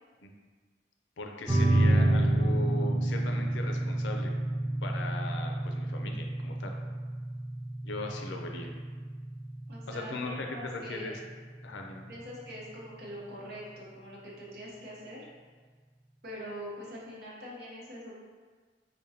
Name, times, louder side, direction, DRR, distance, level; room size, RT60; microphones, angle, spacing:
voice 1, 1.2-4.3 4.8-6.7 7.8-8.7 9.9-11.1 11.6-12.0, left 2 dB, 80° left, 2 dB, 0.5 m, -39 dB
sound 1, 1.5-12.5, right 1 dB, 15° right, 0.5 m, -29 dB
voice 2, 9.7-11.1 12.1-15.3 16.2-18.1, equal, 60° right, -5 dB, 0.9 m, -43 dB
5.0 x 2.2 x 2.7 m, 1.5 s
head